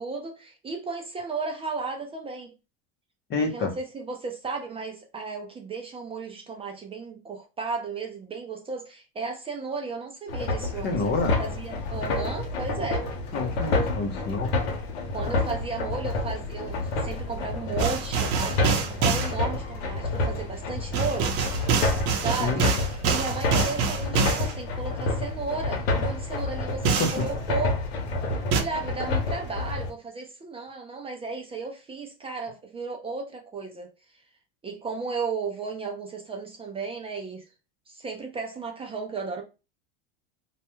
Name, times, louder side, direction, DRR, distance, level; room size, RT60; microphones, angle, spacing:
voice 1, 0.0-2.5 3.5-11.1 11.4-13.1 15.1-21.4 22.2-22.7 23.1-27.9 28.5-33.9 34.6-37.5 37.9-39.4, right 4 dB, 20° right, 0.4 m, -34 dB
voice 2, 3.3-3.7 10.8-11.4 13.3-14.5 22.4-22.6 27.0-27.3, left 3 dB, 35° left, 0.7 m, -28 dB
sound 1, 10.3-29.9, left 2 dB, 80° left, 0.8 m, -29 dB
sound 2, 17.8-19.3 20.9-24.5 26.9-27.2 28.5-28.6, right 5 dB, 50° right, 0.7 m, -25 dB
2.3 x 2.1 x 3.0 m
supercardioid pair, 115°, 30 cm